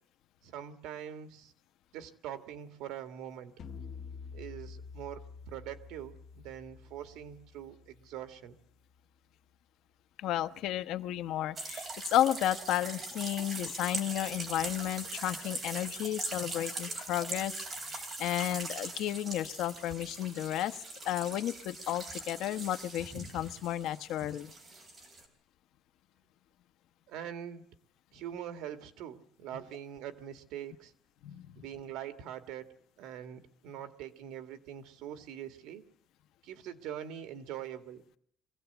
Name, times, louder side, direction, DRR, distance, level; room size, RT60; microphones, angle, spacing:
voice 1, 0.4-1.5 1.9-3.5 4.3-8.5 27.1-27.6 28.1-30.9 31.6-32.7 33.0-35.8 36.4-38.0, right 10 dB, 80° right, 9 dB, 2.0 m, -43 dB
sound 1, 3.6-8.9, left 5 dB, 40° left, 1.6 m, -48 dB
voice 2, 10.2-20.8 21.0-24.5 31.2-31.5, left 12 dB, 65° left, 10 dB, 1.0 m, -33 dB
sound 2, 11.6-25.3, right 2 dB, 25° right, 3.7 m, -41 dB
23.5 x 16.5 x 8.1 m, 0.68 s
cardioid pair, 170°, 0 cm